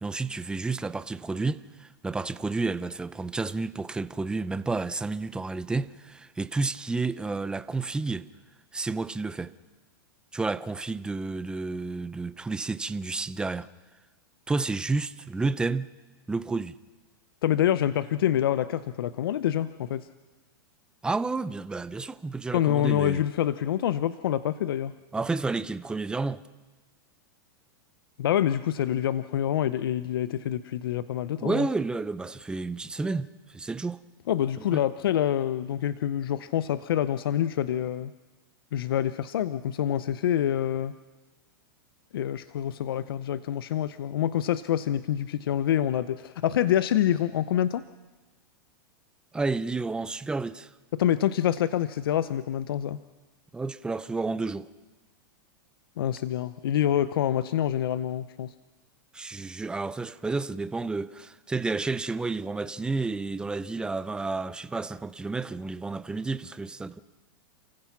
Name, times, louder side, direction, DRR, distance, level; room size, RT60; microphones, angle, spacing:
voice 1, 0.0-8.3 8.7-9.5 10.3-13.7 14.5-15.9 16.3-16.8 21.0-23.2 25.1-26.4 31.4-34.0 34.6-34.8 49.3-50.7 53.5-54.7 59.1-67.0, right 3 dB, 5° right, 0.6 m, -31 dB
voice 2, 17.4-20.1 22.5-24.9 28.2-31.7 34.3-38.1 38.7-40.9 42.1-47.8 50.9-53.0 56.0-58.5, left 11 dB, 80° left, 0.7 m, -26 dB
29.0 x 15.5 x 6.0 m
hypercardioid pair, 135°, 12 cm